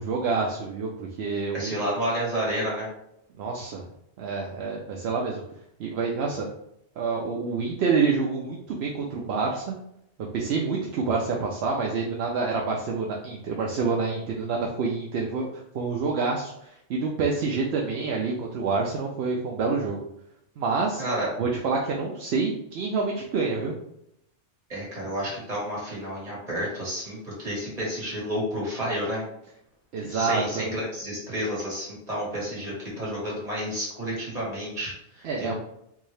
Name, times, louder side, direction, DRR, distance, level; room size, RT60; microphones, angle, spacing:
voice 1, 0.0-1.8 3.4-3.8 4.2-5.4 5.8-6.5 7.0-9.8 10.3-15.5 15.7-20.0 20.6-21.0 21.4-23.7 29.9-30.6 35.2-35.5, right 4 dB, 70° right, -1 dB, 0.8 m, -27 dB
voice 2, 1.5-2.9 21.0-21.3 24.7-29.2 30.0-35.6, equal, 35° right, -5 dB, 1.7 m, -30 dB
3.6 x 2.7 x 3.2 m, 0.77 s
omnidirectional pair, 1.1 m